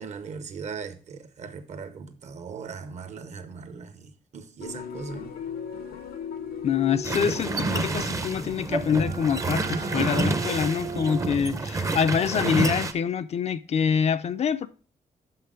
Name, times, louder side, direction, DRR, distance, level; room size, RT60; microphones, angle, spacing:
voice 1, 0.0-5.3, right 5 dB, 50° right, 0.8 m, -39 dB
sound 1, 4.6-9.8, left 7 dB, 85° left, 0.9 m, -38 dB
voice 2, 6.6-14.7, left 7 dB, 45° left, 0.4 m, -25 dB
sound 2, 7.0-12.9, right 3 dB, 20° right, 0.5 m, -28 dB
sound 3, 8.2-13.8, right 4 dB, 80° right, 0.8 m, -40 dB
5.9 x 5.7 x 4.9 m
wide cardioid pair, 160°, 15 cm